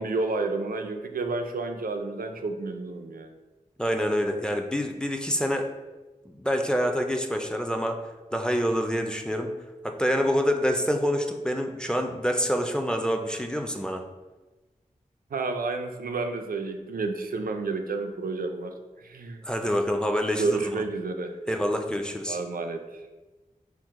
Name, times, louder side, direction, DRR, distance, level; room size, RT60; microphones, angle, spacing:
voice 1, 0.0-3.3 15.3-18.7 19.0-19.4 20.4-21.3 22.3-22.8, right 3 dB, 90° right, 5 dB, 0.4 m, -30 dB
voice 2, 3.8-5.7 6.3-8.0 8.3-9.5 9.8-14.0 19.4-20.8 21.5-22.4, equal, 5° left, 4 dB, 0.4 m, -26 dB
4.5 x 2.1 x 3.5 m, 1.2 s
wide cardioid pair, 55°, 15 cm